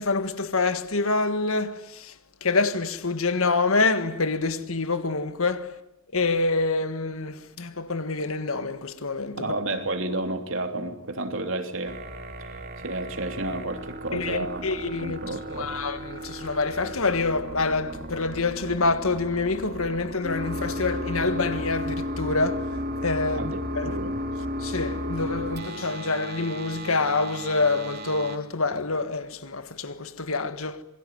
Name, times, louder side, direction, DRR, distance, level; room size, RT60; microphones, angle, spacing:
voice 1, 0.0-5.8 6.1-9.5 14.1-24.0 24.6-30.8, left 3 dB, 70° left, 1.7 m, -27 dB
voice 2, 9.4-12.0 12.4-15.8 23.3-24.2, right 2 dB, 60° right, 3.2 m, -31 dB
sound 1, 11.9-28.4, equal, 45° right, 2.9 m, -34 dB
27.0 x 22.5 x 9.5 m
head